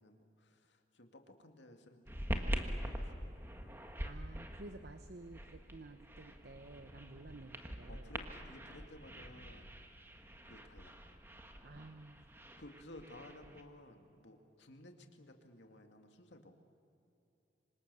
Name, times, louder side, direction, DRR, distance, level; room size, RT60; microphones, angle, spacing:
voice 1, 0.0-2.1 2.4-3.4 7.9-9.7 10.4-11.0 12.6-16.5, left 1 dB, 75° left, 4 dB, 2.3 m, -56 dB
sound 1, 2.1-13.6, equal, 10° right, 1.5 m, -44 dB
voice 2, 4.0-8.1 11.6-12.2, right 2 dB, 60° right, 8 dB, 0.9 m, -52 dB
26.0 x 25.5 x 7.0 m, 2.9 s
head